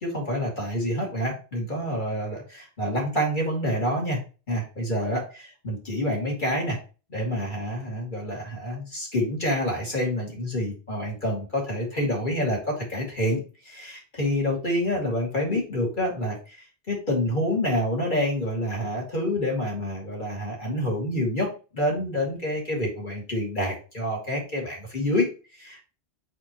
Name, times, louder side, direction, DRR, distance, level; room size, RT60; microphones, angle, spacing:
voice 1, 0.0-4.2 4.5-6.8 7.1-13.4 13.6-16.6 16.9-25.3 25.6-25.8, left 1 dB, 45° left, -1 dB, 2.5 m, -27 dB
6.1 x 5.1 x 3.0 m, 0.34 s
omnidirectional pair, 1.1 m